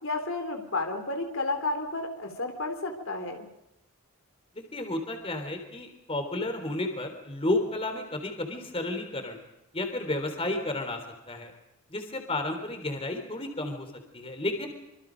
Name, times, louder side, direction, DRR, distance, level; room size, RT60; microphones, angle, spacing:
voice 1, 0.0-3.5, left 2 dB, 65° left, 5 dB, 3.5 m, -32 dB
voice 2, 4.6-9.4 9.7-11.0 11.3-11.5 11.9-13.9 14.1-14.7, left 2 dB, 25° left, 6 dB, 3.7 m, -32 dB
26.5 x 26.0 x 5.2 m, 0.91 s
head